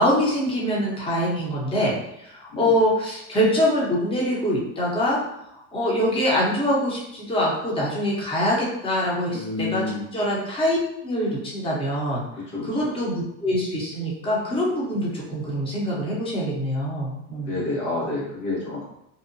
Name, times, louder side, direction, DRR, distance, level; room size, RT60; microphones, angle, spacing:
voice 1, 0.0-5.2 5.7-12.2 12.6-17.5, equal, 15° left, -4 dB, 0.8 m, -24 dB
voice 2, 9.3-10.0 12.5-12.9 17.4-18.8, left 2 dB, 80° left, -5 dB, 1.3 m, -29 dB
2.7 x 2.3 x 2.6 m, 0.81 s
supercardioid pair, 105°, 37 cm